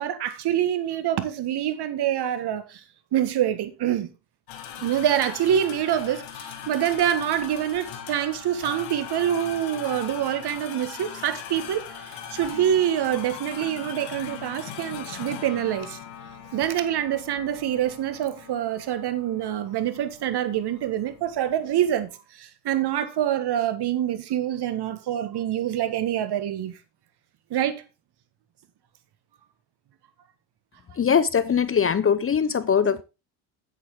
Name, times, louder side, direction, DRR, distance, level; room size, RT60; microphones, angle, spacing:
voice 1, 0.0-2.8 3.1-4.1 4.8-16.0 16.5-22.1 22.4-26.8 27.5-27.8, right 10 dB, 55° right, 1.7 m, -26 dB
sound 1, 4.5-22.1, left 8 dB, 70° left, 2.1 m, -40 dB
voice 2, 31.0-33.0, left 7 dB, 25° left, 0.7 m, -21 dB
9.1 x 8.7 x 3.7 m
hypercardioid pair, 70°, 48 cm